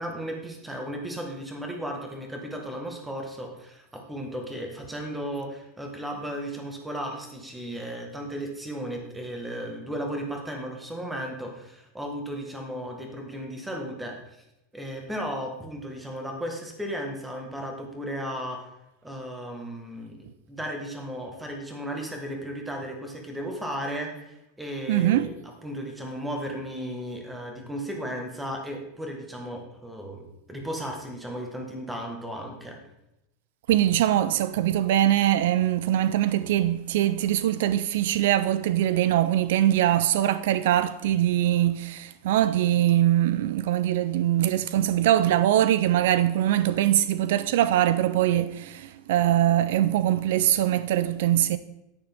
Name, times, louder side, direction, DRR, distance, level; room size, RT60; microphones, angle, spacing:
voice 1, 0.0-14.2 14.7-18.7 19.0-32.8, equal, 5° right, 1.4 m, -35 dB
voice 2, 24.9-25.3 33.7-51.6, right 12 dB, 70° right, 0.4 m, -22 dB
10.0 x 9.6 x 3.5 m
supercardioid pair, 170°, 0 cm